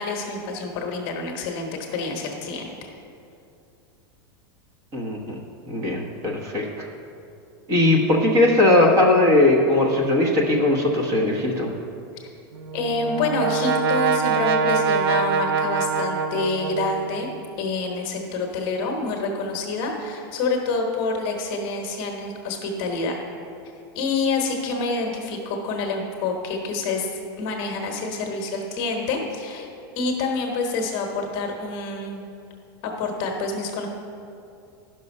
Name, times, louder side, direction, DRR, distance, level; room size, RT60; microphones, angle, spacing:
voice 1, 0.0-2.7 12.7-17.3 17.6-23.2 23.9-27.1 27.4-29.7 30.0-32.3 32.8-33.9, left 3 dB, 30° left, 1 dB, 1.1 m, -27 dB
voice 2, 4.9-5.3 5.7-6.9 7.7-11.8, left 2 dB, 25° right, 0 dB, 1.1 m, -19 dB
Brass instrument, 12.5-17.3, right 5 dB, 75° right, 0.6 m, -24 dB
10.5 x 6.1 x 5.4 m, 2.6 s
supercardioid pair, 175°, 13 cm